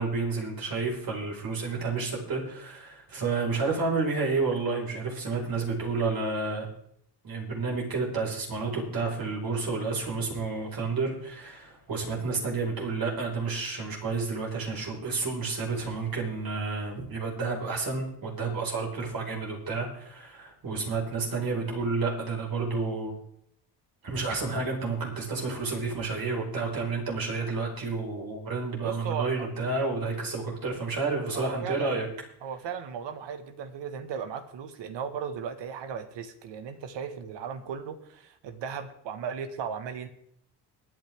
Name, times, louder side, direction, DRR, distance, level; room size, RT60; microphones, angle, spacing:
voice 1, 0.0-6.7 7.2-23.1 24.0-32.1, right 4 dB, 55° right, -1 dB, 4.8 m, -30 dB
voice 2, 28.8-29.5 31.3-31.9 32.4-40.1, right 7 dB, 85° right, 9 dB, 1.6 m, -36 dB
23.0 x 9.2 x 3.6 m, 0.69 s
cardioid pair, 110°, 42 cm